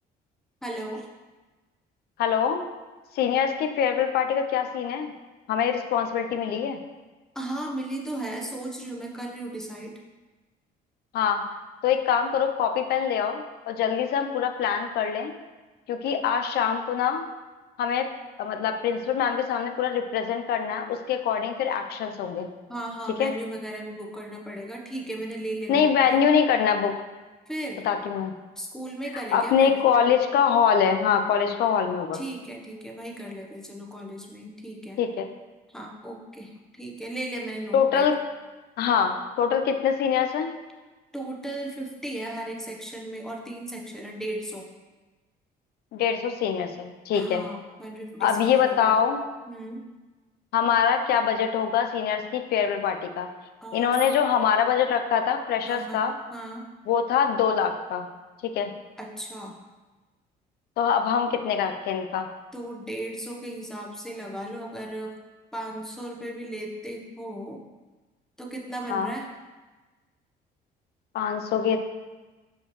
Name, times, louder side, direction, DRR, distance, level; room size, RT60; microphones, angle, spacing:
voice 1, 0.6-1.1 7.3-9.9 22.7-26.3 27.5-27.8 28.6-29.8 32.1-35.0 35.7-38.1 41.1-44.7 47.1-49.0 49.5-49.8 53.6-54.0 55.7-56.0 56.3-56.7 59.0-59.6 62.5-65.1 65.5-67.6 68.4-69.3, right 1 dB, 5° left, 0 dB, 0.9 m, -36 dB
voice 2, 2.2-2.6 3.1-5.1 5.5-6.8 11.1-11.4 11.8-15.3 15.9-17.2 17.8-18.1 18.4-22.5 23.2-23.3 25.7-26.9 27.8-28.3 29.3-32.2 35.0-35.3 37.7-38.1 38.8-40.5 45.9-47.5 48.2-49.2 50.5-53.3 53.7-56.1 56.9-58.1 58.4-58.7 60.8-62.3 68.9-69.1 71.1-71.8, left 7 dB, 70° left, 7 dB, 0.6 m, -24 dB
5.7 x 5.4 x 3.0 m, 1.2 s
cardioid pair, 110°, 17 cm